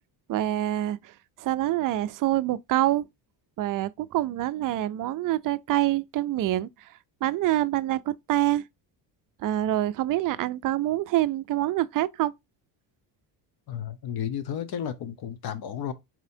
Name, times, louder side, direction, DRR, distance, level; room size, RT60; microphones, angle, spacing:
voice 1, 0.3-1.0 1.4-3.1 3.6-6.7 7.2-8.6 9.4-12.3, right 14 dB, 45° right, 0.4 m, -26 dB
voice 2, 13.7-15.9, left 9 dB, 55° left, 1.0 m, -33 dB
4.4 x 4.1 x 2.7 m
cardioid pair, 100°, 45 cm